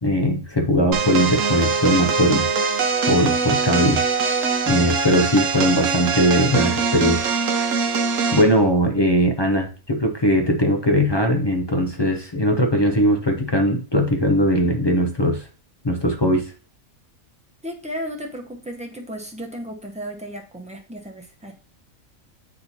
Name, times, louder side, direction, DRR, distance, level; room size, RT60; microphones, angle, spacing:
voice 1, 0.0-2.5 3.1-4.0 4.7-7.7 8.3-15.5 15.8-16.5, equal, 40° left, 3 dB, 0.3 m, -20 dB
sound 1, 0.9-8.5, right 5 dB, 70° right, 1.1 m, -22 dB
voice 2, 17.6-21.5, equal, 5° right, 1 dB, 0.7 m, -34 dB
8.6 x 2.9 x 4.0 m, 0.38 s
omnidirectional pair, 1.5 m